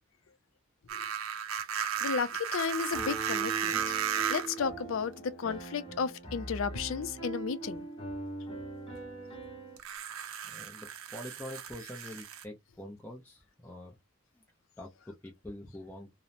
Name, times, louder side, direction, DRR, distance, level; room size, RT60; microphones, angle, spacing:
sound 1, 0.9-4.6 5.6-5.7 9.8-12.4, right 8 dB, 85° right, 0.5 m, -35 dB
voice 1, 2.0-3.8 4.3-7.9, left 5 dB, 70° left, 0.4 m, -33 dB
Piano, 2.9-9.8, right 2 dB, 25° left, 1.0 m, -41 dB
voice 2, 10.4-13.9 14.3-14.4 14.8-16.1, left 1 dB, 10° left, 0.5 m, -45 dB
2.9 x 2.0 x 2.5 m
head